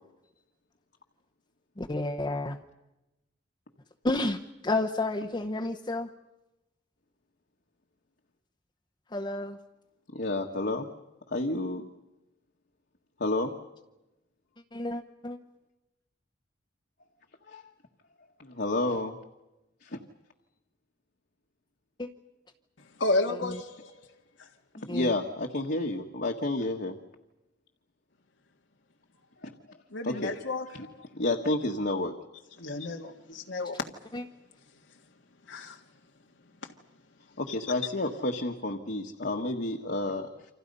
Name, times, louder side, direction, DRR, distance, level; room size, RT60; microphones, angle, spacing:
voice 1, 1.8-2.6 4.0-6.1 9.1-9.6 14.7-15.4 22.0-22.1 23.4-23.6 24.8-25.1 34.1-34.2, left 2 dB, 25° left, 0.9 m, -31 dB
voice 2, 10.1-10.9 11.3-11.9 13.2-13.5 17.5-17.6 18.4-19.2 19.8-20.0 24.8-26.9 29.4-29.8 30.0-30.3 30.7-30.9 31.1-32.1 37.4-40.5, left 2 dB, 60° left, 1.6 m, -30 dB
voice 3, 23.0-24.0 24.4-24.5 29.9-31.1 32.6-33.9 35.5-35.8 36.6-36.7 37.5-37.6, left 2 dB, 90° left, 1.7 m, -32 dB
29.0 x 26.0 x 5.5 m
head